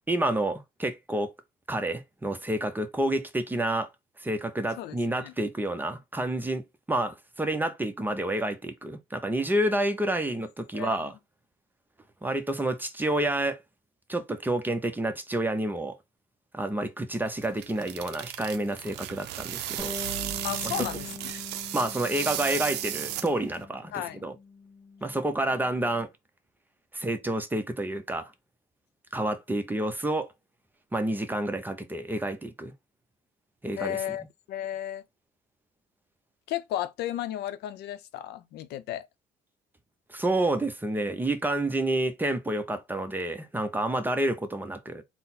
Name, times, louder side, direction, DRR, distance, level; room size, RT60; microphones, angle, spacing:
voice 1, 0.1-1.3 1.7-3.9 4.2-11.1 12.2-13.6 14.1-16.0 16.5-19.9 20.6-20.7 21.7-24.4 25.0-26.1 26.9-28.3 29.1-30.3 30.9-32.7 33.6-34.0 40.1-45.0, right 1 dB, 10° right, 0.6 m, -29 dB
voice 2, 4.8-5.3 10.7-11.1 20.4-21.4 23.9-24.2 33.8-35.0 36.5-39.1, left 12 dB, 75° left, 0.5 m, -34 dB
sound 1, 17.3-23.6, right 12 dB, 85° right, 0.5 m, -35 dB
Bass guitar, 19.8-26.0, left 3 dB, 5° left, 1.5 m, -44 dB
3.8 x 2.0 x 4.1 m
cardioid pair, 110°, 17 cm